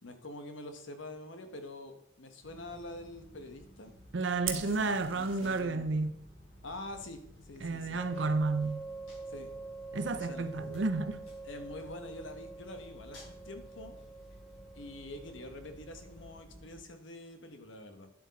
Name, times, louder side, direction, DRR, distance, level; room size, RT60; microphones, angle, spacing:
voice 1, 0.0-3.9 4.5-5.9 6.6-8.0 9.3-9.5 10.1-10.5 11.4-14.0 14.7-18.1, left 1 dB, 70° left, 1.1 m, -46 dB
sound 1, 2.4-16.8, equal, 90° left, 3.8 m, -55 dB
voice 2, 4.1-6.1 7.6-8.8 9.9-11.2, right 3 dB, 65° right, 0.6 m, -31 dB
Fire, 4.4-5.6, right 9 dB, 80° right, 1.4 m, -40 dB
sound 2, 8.0-16.4, right 3 dB, ahead, 0.3 m, -46 dB
10.0 x 7.8 x 4.1 m
head